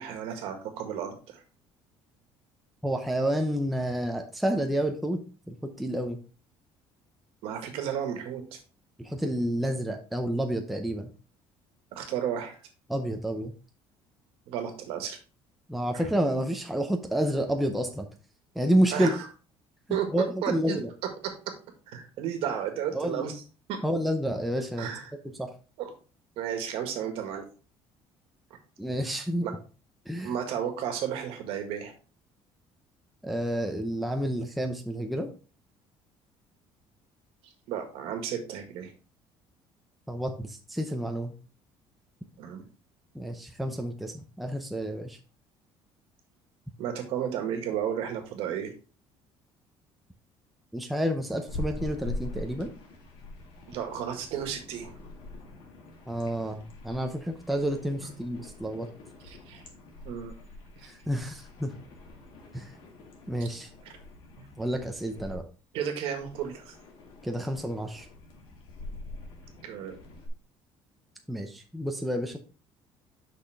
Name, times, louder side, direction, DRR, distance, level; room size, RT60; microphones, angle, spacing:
voice 1, 0.0-1.4 7.4-8.6 11.9-12.6 14.5-15.2 15.9-16.0 18.9-19.2 19.9-20.1 20.4-20.8 21.9-23.4 23.7-23.8 24.8-25.1 25.8-25.9 26.4-27.5 28.5-28.6 30.2-31.9 37.4-38.9 42.4-42.6 46.8-48.7 53.7-54.9 59.2-59.6 60.1-60.3 60.8-60.9 63.4-63.5 64.4-64.5 65.7-66.7 69.6-70.0, right 9 dB, 70° right, 5 dB, 1.6 m, -33 dB
voice 2, 2.8-6.2 9.0-11.1 12.9-13.5 15.7-18.1 18.6-19.1 20.1-20.9 22.9-23.3 23.8-24.9 25.4-25.5 28.8-29.5 30.1-30.3 33.2-35.3 40.1-41.3 43.1-45.2 50.7-52.7 56.1-58.9 60.8-61.7 62.5-62.7 63.3-63.7 64.6-65.5 67.2-68.1 71.3-72.4, equal, ahead, 3 dB, 0.5 m, -29 dB
sound 1, 51.5-65.4 66.2-70.3, left 2 dB, 60° left, 1.9 m, -44 dB
6.2 x 5.7 x 3.3 m, 0.36 s
cardioid pair, 175°, 10 cm